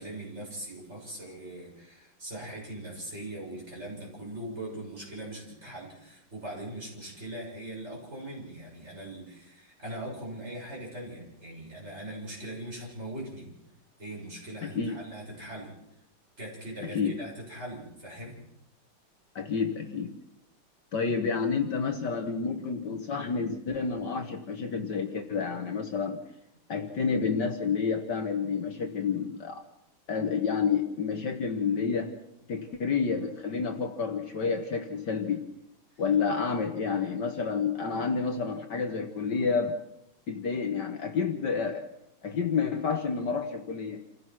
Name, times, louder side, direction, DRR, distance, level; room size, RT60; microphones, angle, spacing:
voice 1, 0.0-13.5 14.0-15.7 16.4-18.4 35.9-36.0, right 1 dB, 30° right, -3 dB, 7.3 m, -41 dB
voice 2, 14.6-15.0 16.9-17.2 19.4-20.2 20.9-26.2 26.7-29.6 30.1-32.2 32.5-35.5 36.0-39.8 40.3-41.9 42.2-44.0, left 5 dB, 55° left, 6 dB, 1.8 m, -29 dB
28.0 x 16.0 x 6.1 m, 0.81 s
omnidirectional pair, 2.3 m